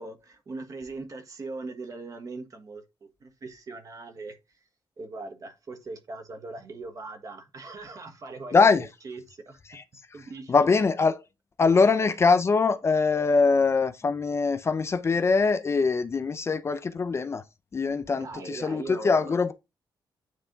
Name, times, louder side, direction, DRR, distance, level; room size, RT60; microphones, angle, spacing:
voice 1, 0.0-4.4 5.0-9.6 10.1-10.6 18.1-19.3, right 3 dB, 40° right, 1.4 m, -40 dB
voice 2, 8.5-8.9 9.7-9.8 10.5-11.2 11.6-17.4 17.7-19.5, left 4 dB, 30° left, 0.5 m, -23 dB
9.4 x 3.4 x 3.8 m
wide cardioid pair, 135°, 8 cm